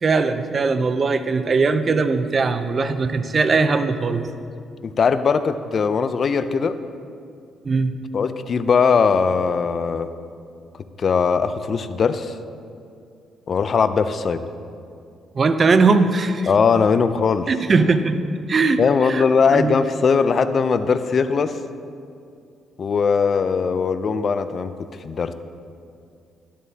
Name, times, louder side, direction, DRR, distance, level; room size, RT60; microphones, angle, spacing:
voice 1, 0.0-4.3 7.6-7.9 15.4-16.5 17.5-18.2 18.5-19.2 19.5-19.7, right 4 dB, 40° right, 10 dB, 0.6 m, -19 dB
voice 2, 4.8-6.8 8.1-10.1 11.0-12.3 13.5-14.4 16.5-17.5 18.8-21.6 22.8-24.7 25.0-25.3, left 5 dB, 50° left, 11 dB, 0.5 m, -20 dB
12.0 x 11.0 x 2.8 m, 2.4 s
cardioid pair, 90°, 0 cm